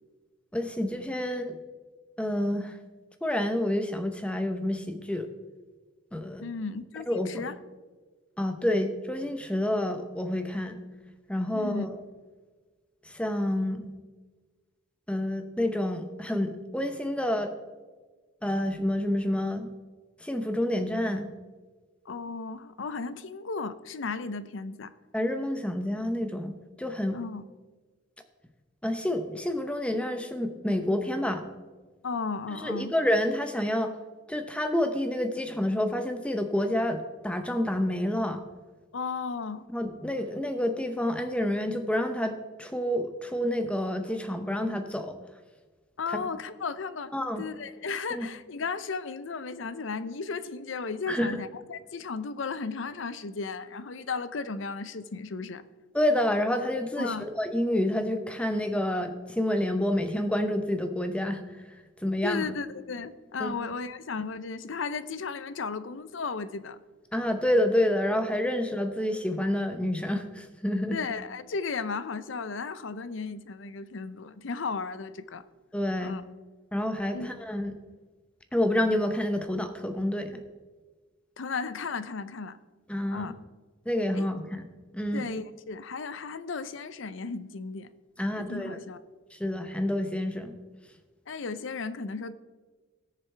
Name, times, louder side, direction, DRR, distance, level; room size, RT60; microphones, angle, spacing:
voice 1, 0.5-1.6 2.2-2.8 3.2-5.3 6.1-6.4 7.1-7.4 8.4-10.8 11.3-12.0 13.0-13.9 15.1-17.5 18.4-19.7 20.2-21.3 25.1-27.2 28.8-31.5 32.6-33.9 34.3-38.4 39.7-45.2 47.1-47.4 48.1-48.3 51.1-51.4 55.9-61.4 62.0-62.5 63.4-63.5 67.1-71.0 75.7-76.1 76.7-77.7 78.5-80.4 82.9-83.3 83.9-84.6 84.9-85.3 88.2-88.8 89.3-90.5, left 1 dB, 5° left, 0.8 m, -28 dB
voice 2, 6.4-7.6 11.5-11.9 22.1-24.9 27.1-27.4 32.0-32.9 38.9-39.6 46.0-55.7 57.0-57.3 62.2-66.8 70.9-75.4 76.0-76.2 77.1-77.3 81.4-82.6 83.1-83.3 84.1-84.3 85.1-87.9 88.3-89.0 91.3-92.3, left 4 dB, 70° left, 0.6 m, -35 dB
18.5 x 6.8 x 3.4 m
head